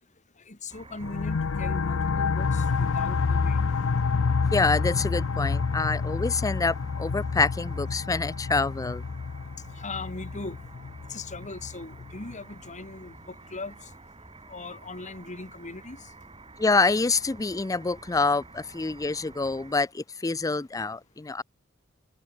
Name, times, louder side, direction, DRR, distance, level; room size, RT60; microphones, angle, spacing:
voice 1, 0.5-3.6 9.8-10.6 11.1-13.9 14.5-16.0, left 3 dB, 35° left, 2.4 m, -39 dB
sound 1, 0.7-19.7, right 2 dB, 25° right, 3.0 m, -50 dB
sound 2, 1.0-12.3, left 4 dB, 65° left, 0.6 m, -28 dB
voice 2, 4.5-9.1 16.6-21.4, left 3 dB, 15° left, 0.4 m, -26 dB
head